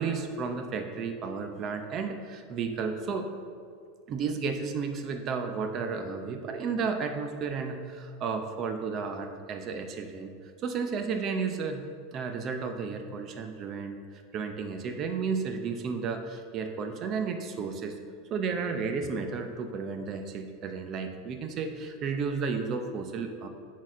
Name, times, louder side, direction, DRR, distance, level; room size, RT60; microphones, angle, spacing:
voice 1, 0.0-3.3 4.1-10.3 10.6-11.8 12.1-18.0 18.3-23.5, right 5 dB, 40° right, 6 dB, 0.6 m, -33 dB
6.3 x 4.1 x 6.1 m, 2.2 s
supercardioid pair, 120°, 0 cm